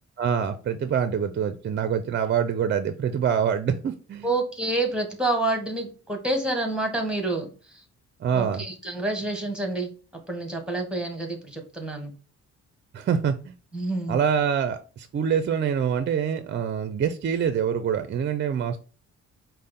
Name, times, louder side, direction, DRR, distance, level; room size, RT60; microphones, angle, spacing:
voice 1, 0.2-4.3 8.2-8.6 12.9-13.5 14.1-18.8, right 7 dB, 40° right, 10 dB, 0.4 m, -25 dB
voice 2, 4.2-7.8 8.3-12.1 13.7-14.2, right 2 dB, 5° right, 3 dB, 1.2 m, -28 dB
5.0 x 2.1 x 4.1 m, 0.36 s
cardioid pair, 90°, 30 cm